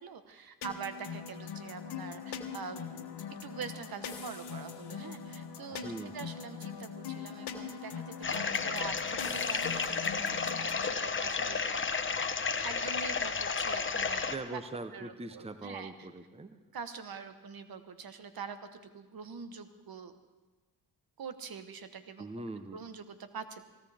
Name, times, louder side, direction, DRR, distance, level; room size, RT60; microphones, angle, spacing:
voice 1, 0.0-2.8 3.4-11.6 12.5-14.6 14.9-16.1 16.7-20.1 21.2-22.2 22.7-23.6, right 6 dB, 55° right, 9 dB, 1.3 m, -44 dB
sound 1, 0.6-10.9, left 6 dB, 70° left, 1.4 m, -42 dB
voice 2, 5.8-6.3 14.3-16.6 22.2-22.9, right 2 dB, 15° right, 10 dB, 0.9 m, -42 dB
sound 2, 8.2-14.3, left 5 dB, 30° left, 1.0 m, -32 dB
18.5 x 17.0 x 3.5 m, 1.2 s
supercardioid pair, 60°, 42 cm